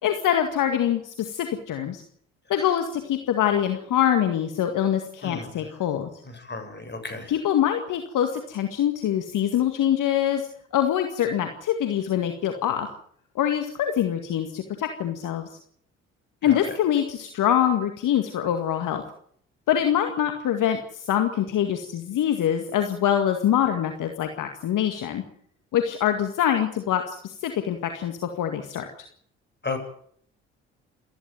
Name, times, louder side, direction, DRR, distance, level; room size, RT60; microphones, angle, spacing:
voice 1, 0.0-2.0 2.5-6.1 7.3-10.5 10.7-12.9 13.4-15.5 16.4-19.0 19.7-25.2 25.7-28.8, left 10 dB, 65° left, 6 dB, 2.1 m, -24 dB
voice 2, 5.2-5.5 6.3-7.3 16.4-16.6 29.6-29.8, left 3 dB, 30° left, 6 dB, 7.8 m, -33 dB
28.0 x 11.0 x 9.2 m, 0.63 s
hypercardioid pair, 45°, 34 cm